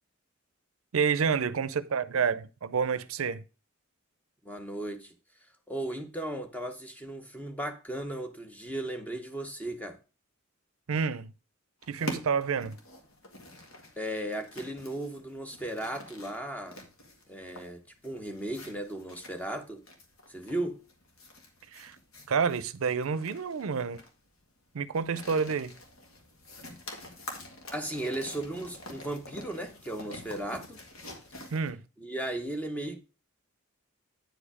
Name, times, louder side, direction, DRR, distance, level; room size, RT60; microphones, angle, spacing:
voice 1, 0.9-3.4 10.9-11.3 11.9-12.8 21.7-22.0 22.3-24.0 24.7-25.7 31.5-31.8, right 6 dB, 80° right, 0.5 m, -29 dB
voice 2, 4.4-5.1 5.7-10.0 14.0-16.8 17.3-19.8 20.3-20.8 27.7-30.8 32.0-33.0, right 1 dB, 5° left, 0.9 m, -36 dB
sound 1, 11.8-31.7, left 1 dB, 85° left, 1.8 m, -46 dB
9.1 x 5.1 x 4.8 m
head